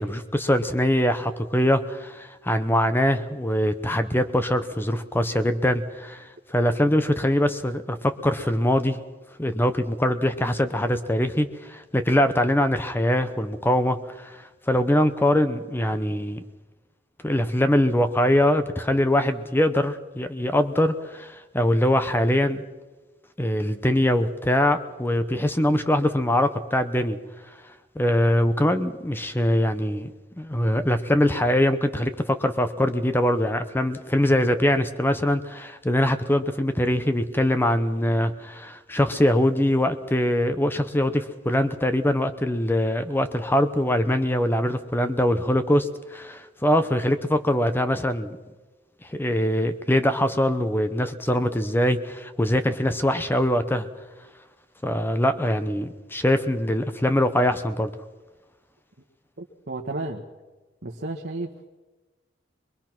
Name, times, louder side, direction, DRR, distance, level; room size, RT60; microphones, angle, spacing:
voice 1, 0.0-9.0 9.4-16.4 17.2-22.6 23.4-27.2 28.0-30.1 30.4-48.4 49.1-53.9 54.8-57.9, left 1 dB, 10° left, 9 dB, 0.8 m, -23 dB
voice 2, 59.4-60.2 60.8-61.5, right 2 dB, 60° right, 0 dB, 1.4 m, -32 dB
23.5 x 21.5 x 6.0 m, 1.2 s
head